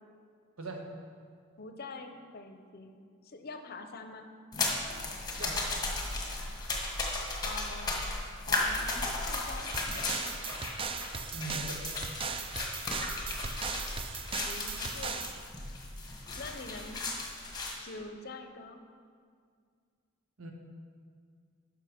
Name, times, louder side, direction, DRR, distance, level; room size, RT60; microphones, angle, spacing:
voice 1, 1.6-4.3 7.1-8.1 8.5-10.3 14.5-15.4 16.4-17.2 17.8-18.8, left 3 dB, 45° left, 6 dB, 0.7 m, -45 dB
sound 1, 4.5-17.8, left 2 dB, 20° left, 1.3 m, -35 dB
sound 2, 9.7-15.4, right 5 dB, 25° right, 0.4 m, -38 dB
voice 2, 11.3-11.8 20.4-20.5, right 2 dB, 75° right, 1 dB, 1.3 m, -40 dB
11.5 x 5.6 x 5.0 m, 2.1 s
head